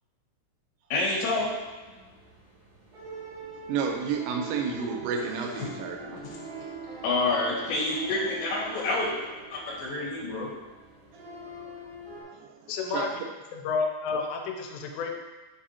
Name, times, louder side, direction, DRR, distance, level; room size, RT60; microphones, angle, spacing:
voice 1, 0.9-1.4 5.6-5.7 6.2-6.4 7.0-9.1 9.5-10.5, left 2 dB, 60° left, -5 dB, 2.8 m, -28 dB
sound 1, 1.4-12.2, right 3 dB, 55° right, 3.5 m, -43 dB
voice 2, 3.7-6.2 9.6-9.8 11.5-11.7 12.3-13.1, right 5 dB, 90° right, 3 dB, 3.0 m, -32 dB
voice 3, 12.7-13.1 13.5-15.2, left 5 dB, 85° left, 3 dB, 2.9 m, -30 dB
8.3 x 4.8 x 2.8 m, 1.3 s
omnidirectional pair, 4.9 m